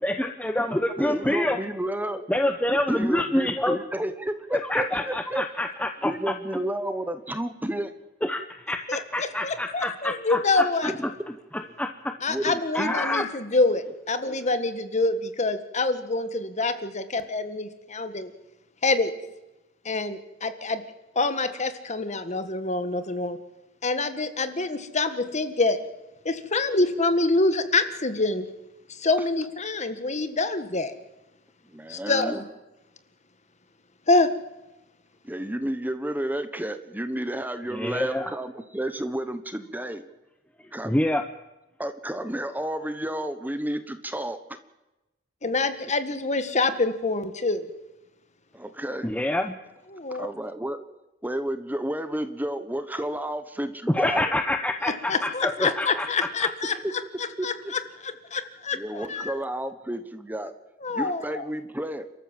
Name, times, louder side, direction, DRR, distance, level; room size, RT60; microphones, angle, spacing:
voice 1, 0.0-1.6 2.3-3.8 4.5-6.3 8.2-10.9 11.5-12.1 12.7-13.3 14.2-14.3 37.7-38.3 40.8-41.2 49.0-49.5 53.9-56.5, left 1 dB, 5° left, 6 dB, 0.9 m, -27 dB
voice 2, 1.0-2.3 2.9-5.4 6.0-7.9 12.3-12.9 31.7-32.4 35.2-40.0 40.7-40.9 41.8-44.6 48.5-49.1 50.1-50.8 51.2-54.2 57.4-57.7 58.7-60.5 60.9-62.1, right 1 dB, 10° right, 10 dB, 1.1 m, -31 dB
voice 3, 8.9-10.9 12.2-18.3 18.8-19.1 19.8-20.8 21.1-23.4 23.8-25.8 26.2-28.5 28.9-30.9 31.9-32.4 34.1-34.3 45.4-47.7 49.9-50.3 55.1-56.7 57.2-59.3 60.8-61.4, left 3 dB, 35° left, 10 dB, 1.6 m, -26 dB
30.0 x 13.5 x 7.5 m, 0.99 s
head